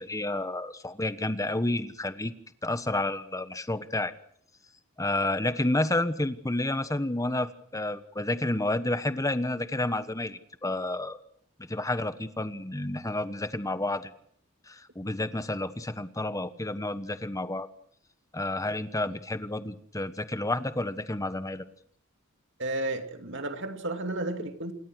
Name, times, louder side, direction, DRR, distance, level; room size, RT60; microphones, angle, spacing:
voice 1, 0.0-2.3 2.6-4.1 5.0-11.2 11.7-14.1 14.7-17.7 18.3-21.6, left 2 dB, 15° left, 12 dB, 1.2 m, -30 dB
voice 2, 22.6-24.7, right 2 dB, 60° right, 6 dB, 2.6 m, -32 dB
27.5 x 20.0 x 6.3 m, 0.65 s
head